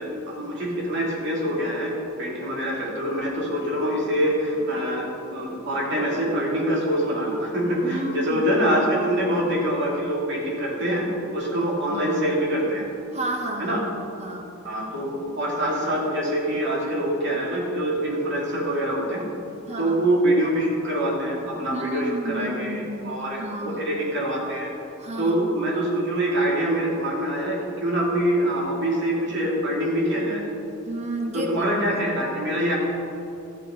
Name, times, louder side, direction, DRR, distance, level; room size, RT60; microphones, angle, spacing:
voice 1, 0.0-11.1 11.3-12.8 13.6-13.8 14.6-19.2 19.8-24.7 25.2-30.4 31.3-32.8, right 1 dB, 55° right, -4 dB, 2.8 m, -25 dB
voice 2, 7.8-8.5 11.9-12.3 13.1-13.8 14.2-14.5 19.7-20.0 21.7-24.0 25.0-25.4 25.6-25.7 30.8-32.0, right 1 dB, 30° right, 3 dB, 1.3 m, -32 dB
14.5 x 7.6 x 5.1 m, 2.9 s
head